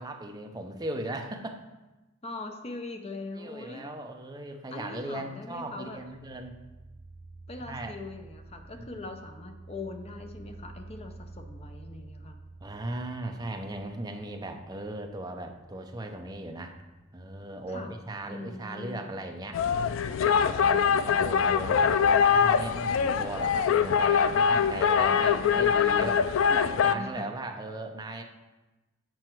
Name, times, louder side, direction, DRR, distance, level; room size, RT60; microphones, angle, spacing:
voice 1, 0.0-1.6 3.3-6.5 7.6-8.0 8.8-9.1 12.6-16.8 17.1-19.6 20.4-26.2 26.8-28.2, right 1 dB, 20° right, 3 dB, 0.7 m, -37 dB
voice 2, 2.2-3.9 4.7-6.0 7.5-12.4 17.7-17.9 18.3-19.1 20.2-20.5 21.1-21.8 23.0-23.3 24.5-24.8 25.3-26.2 26.5-27.3, left 3 dB, 30° left, 5 dB, 0.6 m, -41 dB
sound 1, 5.8-18.3, right 3 dB, 40° right, 1.5 m, -50 dB
sound 2, 19.5-26.9, left 7 dB, 80° left, 0.3 m, -23 dB
7.8 x 5.7 x 4.6 m, 1.1 s
head